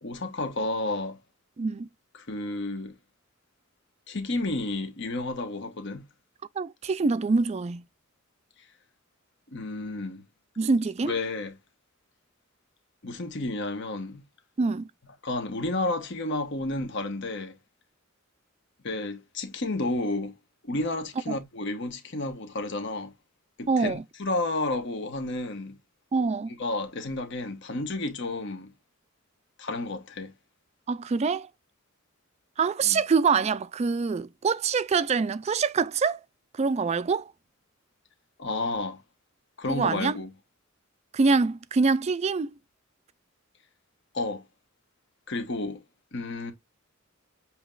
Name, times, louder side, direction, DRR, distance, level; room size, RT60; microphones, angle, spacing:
voice 1, 0.0-1.2 2.3-2.9 4.1-6.0 9.5-10.2 11.0-11.5 13.0-14.2 15.2-17.5 18.8-20.3 20.7-23.1 23.6-25.7 26.6-28.7 29.6-30.3 32.8-33.0 38.4-39.0 39.6-40.3 44.1-44.4 45.3-45.8 46.1-46.5, left 2 dB, 60° left, 1.1 m, -31 dB
voice 2, 1.6-1.9 6.6-7.8 10.6-11.1 14.6-14.9 21.3-21.4 23.7-24.0 26.1-26.5 30.9-31.5 32.6-36.2 36.6-37.3 39.7-40.2 41.1-42.5, right 4 dB, 30° right, 0.3 m, -25 dB
7.3 x 2.9 x 2.4 m
head